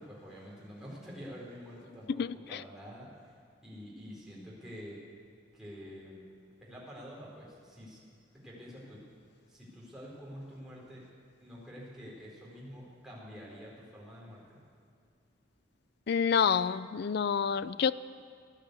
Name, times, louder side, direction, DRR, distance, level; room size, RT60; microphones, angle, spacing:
voice 1, 0.0-3.4 3.6-5.0 5.5-6.2 6.6-8.0 8.3-9.0 9.5-11.0 11.4-14.6, equal, 5° right, -6 dB, 4.4 m, -47 dB
voice 2, 16.1-17.9, left 6 dB, 55° left, 15 dB, 0.4 m, -28 dB
16.5 x 10.5 x 8.2 m, 2.2 s
head